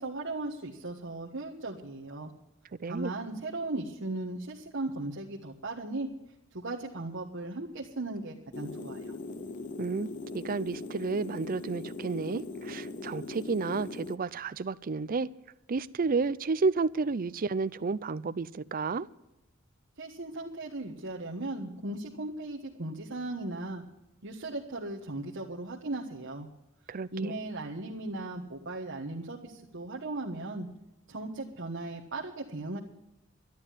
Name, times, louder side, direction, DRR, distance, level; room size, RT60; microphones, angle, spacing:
voice 1, 0.0-2.3 2.8-6.1 6.5-9.1 20.0-23.8 24.2-26.5 27.1-30.7 31.1-32.8, right 2 dB, 60° right, 1.4 m, -37 dB
voice 2, 2.8-3.1 9.8-15.3 15.7-19.1 26.9-27.3, right 4 dB, 45° right, 0.5 m, -31 dB
sound 1, 8.5-14.2, left 3 dB, 40° left, 0.6 m, -40 dB
12.5 x 11.5 x 7.4 m
head